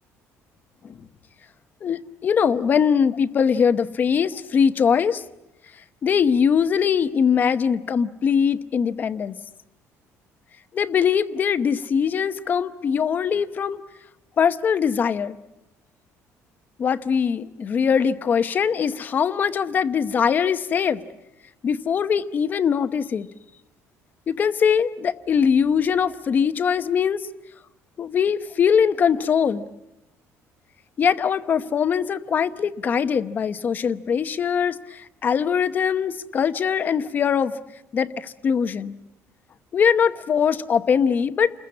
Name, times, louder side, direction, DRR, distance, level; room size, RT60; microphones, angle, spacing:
voice 1, 1.8-5.2 6.0-9.4 10.7-13.8 14.4-15.3 16.8-21.0 21.6-23.3 24.3-27.2 28.0-29.7 31.0-37.6 37.9-38.9 39.7-41.5, left 7 dB, 30° left, 11 dB, 0.9 m, -21 dB
29.5 x 21.5 x 8.5 m, 0.91 s
cardioid pair, 165°, 6 cm